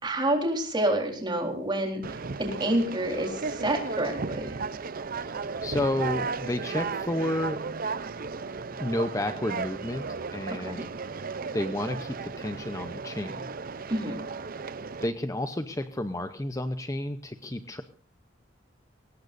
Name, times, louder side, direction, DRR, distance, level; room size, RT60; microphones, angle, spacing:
voice 1, 0.0-4.5 10.6-10.9 13.9-14.2, right 1 dB, 25° right, 1 dB, 4.1 m, -28 dB
Conversation, 2.0-15.1, right 4 dB, 50° right, 0.7 m, -35 dB
voice 2, 5.2-7.6 8.8-10.8 11.5-13.5 15.0-17.8, left 1 dB, 15° left, 8 dB, 0.8 m, -31 dB
22.5 x 18.5 x 2.6 m, 0.39 s
head